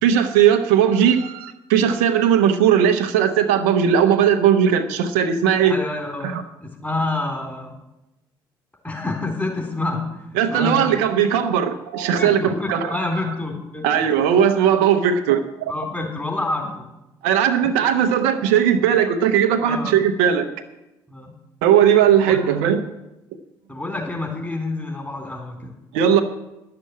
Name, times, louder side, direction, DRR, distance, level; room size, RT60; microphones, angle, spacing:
voice 1, 0.0-5.8 6.2-6.4 10.4-13.0 13.8-15.7 17.2-20.5 21.6-22.8 25.9-26.2, right 8 dB, 85° right, 7 dB, 0.8 m, -18 dB
voice 2, 5.6-7.8 8.8-11.0 12.2-14.2 15.7-16.9 17.6-17.7 19.6-20.0 21.1-21.3 22.3-22.4 23.7-25.8, left 2 dB, 15° left, 1 dB, 3.7 m, -28 dB
11.0 x 6.7 x 8.7 m, 0.95 s
hypercardioid pair, 50°, 10 cm